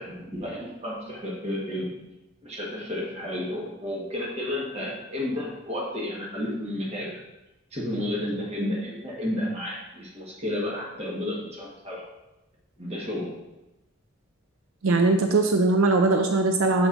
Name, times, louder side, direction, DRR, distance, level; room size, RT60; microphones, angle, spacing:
voice 1, 0.0-2.0 2.4-7.2 7.7-12.0 12.8-13.4, left 1 dB, 30° right, -3 dB, 1.4 m, -32 dB
voice 2, 14.8-16.9, right 3 dB, 80° right, 5 dB, 0.5 m, -21 dB
6.3 x 6.0 x 2.6 m, 0.98 s
head